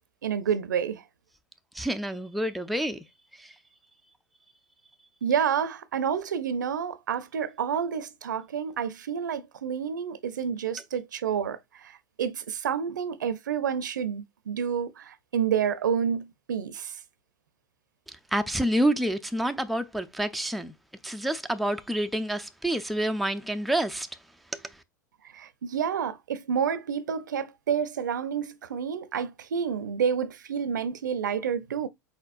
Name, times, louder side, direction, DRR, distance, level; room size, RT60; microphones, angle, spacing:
voice 1, 0.2-1.0 5.2-11.9 12.2-17.0 25.3-31.9, right 7 dB, 70° right, 0.5 m, -29 dB
voice 2, 1.7-3.0 3.3-3.5 18.1-20.7 21.0-24.1 24.5-24.8, right 1 dB, ahead, 0.4 m, -28 dB
4.3 x 4.0 x 2.5 m
figure-of-eight pair, 90°, 10 cm